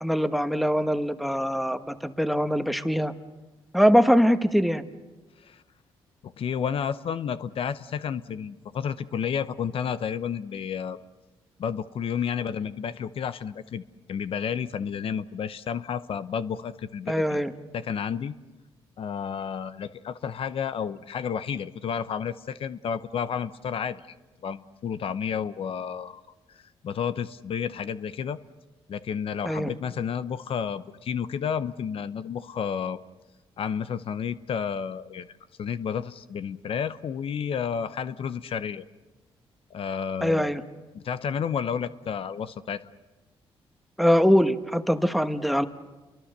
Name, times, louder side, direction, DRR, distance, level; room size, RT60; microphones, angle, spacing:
voice 1, 0.0-3.1 3.7-4.8 17.1-17.5 29.4-29.7 40.2-40.6 44.0-45.7, equal, ahead, 9 dB, 1.3 m, -22 dB
voice 2, 6.2-11.0 11.6-13.8 14.1-17.4 17.7-18.3 19.0-24.0 24.4-26.2 26.5-28.4 28.9-33.0 33.6-35.3 35.6-38.9 39.7-40.5 40.9-42.8, left 7 dB, 60° left, 13 dB, 0.8 m, -31 dB
30.0 x 23.0 x 6.7 m, 1.2 s
cardioid pair, 85°, 10 cm